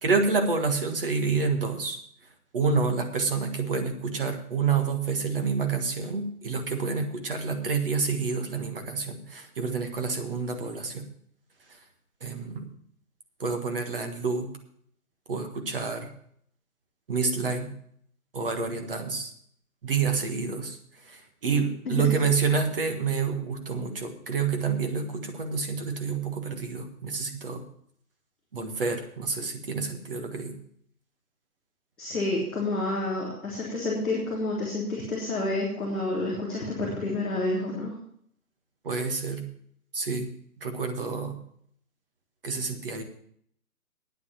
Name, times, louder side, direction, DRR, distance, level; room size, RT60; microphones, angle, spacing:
voice 1, 0.0-2.0 2.5-11.0 12.2-12.7 13.4-14.5 15.3-16.1 17.1-17.7 18.3-19.3 19.8-20.8 21.4-27.6 28.5-30.5 38.8-39.4 39.9-40.3 40.6-41.4 42.4-43.0, right 5 dB, 40° right, 5 dB, 1.6 m, -28 dB
voice 2, 32.0-37.9, left 2 dB, ahead, -16 dB, 0.9 m, -29 dB
9.4 x 8.4 x 7.2 m, 0.66 s
hypercardioid pair, 170°, 45 cm